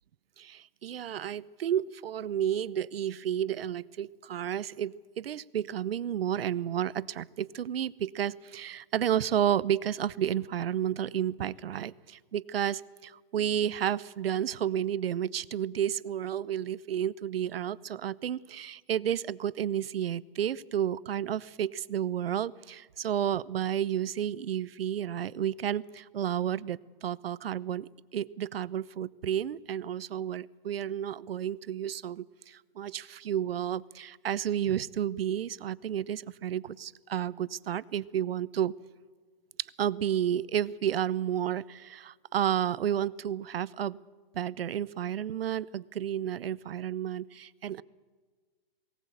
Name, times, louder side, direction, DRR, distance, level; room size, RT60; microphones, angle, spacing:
voice 1, 0.4-38.7 39.6-44.0 44.3-47.8, right 10 dB, 80° right, 19 dB, 0.8 m, -31 dB
19.0 x 18.0 x 8.0 m, 1.4 s
hypercardioid pair, 150°, 29 cm